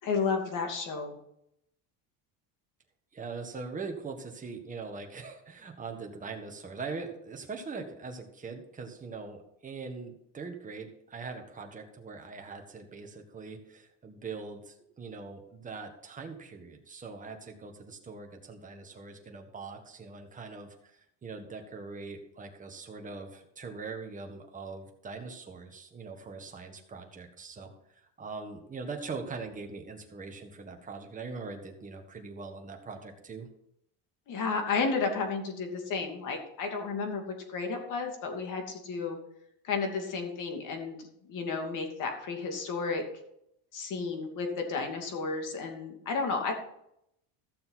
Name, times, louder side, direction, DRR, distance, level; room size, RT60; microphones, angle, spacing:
voice 1, 0.0-1.2 34.3-39.2 39.6-41.0 41.3-43.0 43.7-46.5, left 4 dB, 45° left, 3 dB, 2.7 m, -32 dB
voice 2, 3.1-27.7 28.2-33.5, right 4 dB, 20° right, 3 dB, 1.6 m, -42 dB
15.0 x 6.9 x 4.1 m, 0.76 s
cardioid pair, 150°, 42 cm